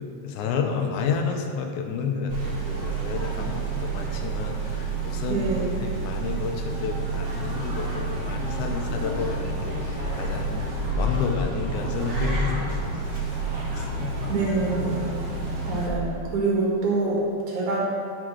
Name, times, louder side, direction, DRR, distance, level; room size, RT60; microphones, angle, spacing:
voice 1, 0.0-13.0 13.7-14.2, left 5 dB, 80° left, 4 dB, 2.3 m, -31 dB
sound 1, 2.3-15.9, right 2 dB, 50° right, 2.7 m, -29 dB
voice 2, 5.3-5.8 14.3-15.2 15.7-17.2 17.5-17.8, right 3 dB, 70° right, -4 dB, 3.2 m, -25 dB
12.0 x 5.0 x 6.2 m, 2.3 s
omnidirectional pair, 3.5 m